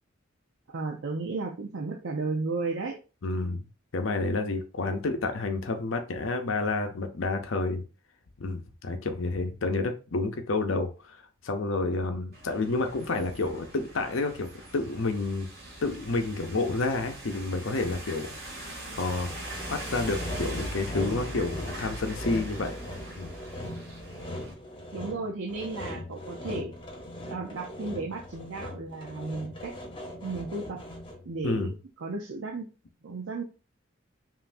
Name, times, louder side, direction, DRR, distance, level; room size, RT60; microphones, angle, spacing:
voice 1, 0.7-3.0 24.9-26.7 27.3-29.7 30.2-30.8 31.3-31.7 32.0-32.7 33.0-33.4, right 3 dB, 80° right, 0 dB, 0.6 m, -34 dB
voice 2, 3.2-3.6 3.9-7.8 8.4-11.2 11.4-15.5 15.8-18.3 18.6-19.3 19.7-22.7 23.2-23.3 31.4-31.7, left 3 dB, 80° left, 6 dB, 0.7 m, -29 dB
sound 1, 12.3-24.5, right 1 dB, 50° right, 2.0 m, -41 dB
Sawing, 19.3-31.3, left 1 dB, 25° left, 0.8 m, -40 dB
5.5 x 2.6 x 2.6 m, 0.32 s
head